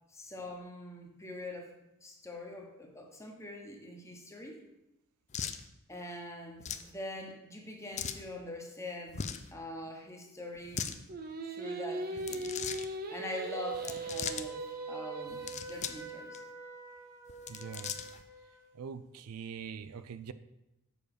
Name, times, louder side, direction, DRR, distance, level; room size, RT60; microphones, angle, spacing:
voice 1, 0.0-1.7 2.0-4.6 5.9-9.3 9.5-11.0 11.4-12.6 13.1-16.4, left 1 dB, 15° left, 1 dB, 1.1 m, -44 dB
sound 1, 5.3-5.6 6.6-6.9 8.0-8.2 9.1-9.5 10.6-11.0 12.2-12.9 13.7-14.5 15.3-16.0 16.3-16.4 17.3-18.2, left 7 dB, 30° left, 0.4 m, -38 dB
Singing, 11.1-16.3, right 2 dB, 40° right, 0.7 m, -39 dB
Wind instrument woodwind instrument, 14.0-18.7, right 1 dB, 15° right, 1.1 m, -49 dB
voice 2, 17.5-17.9 18.7-20.3, right 6 dB, 85° right, 13 dB, 0.4 m, -43 dB
7.1 x 5.4 x 4.9 m, 0.91 s
head